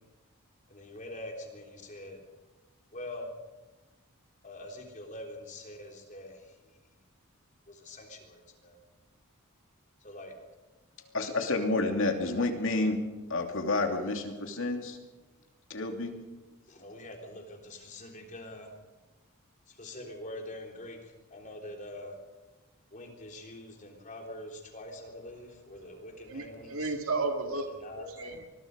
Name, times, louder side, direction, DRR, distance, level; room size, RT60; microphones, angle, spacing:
voice 1, 0.7-2.2 2.9-3.3 4.4-6.4 7.7-8.8 10.0-10.3 16.7-18.7 19.7-21.0 21.3-22.2 22.9-26.9 27.7-28.1, left 1 dB, 35° left, 3.6 m, -44 dB
voice 2, 11.0-13.0 13.3-15.0 15.7-16.1, left 2 dB, 65° left, 2.7 m, -29 dB
voice 3, 26.3-27.7 27.9-28.5, right 3 dB, 70° right, 2.1 m, -33 dB
25.0 x 21.5 x 5.2 m
head